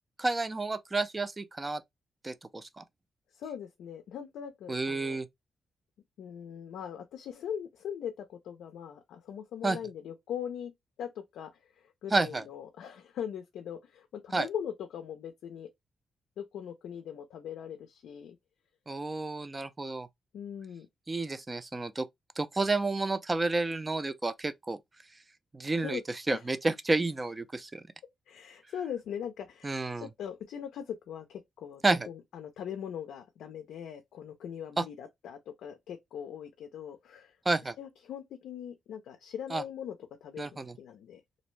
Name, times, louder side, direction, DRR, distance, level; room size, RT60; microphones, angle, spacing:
voice 1, 0.2-1.8 2.2-2.8 4.7-5.3 9.6-9.8 12.1-12.4 14.3-14.5 18.9-20.1 21.1-22.1 22.4-24.8 25.5-26.0 26.3-27.8 29.6-30.1 31.8-32.1 34.8-34.9 37.5-37.7 39.5-39.6 40.4-40.7, right 3 dB, 20° right, 0.3 m, -30 dB
voice 2, 3.3-5.2 6.2-10.7 11.0-15.7 16.4-18.4 20.3-20.9 25.8-26.0 26.3-26.4 28.3-37.4 37.8-41.2, left 8 dB, 90° left, 0.4 m, -41 dB
2.5 x 2.0 x 3.0 m
cardioid pair, 120°, 0 cm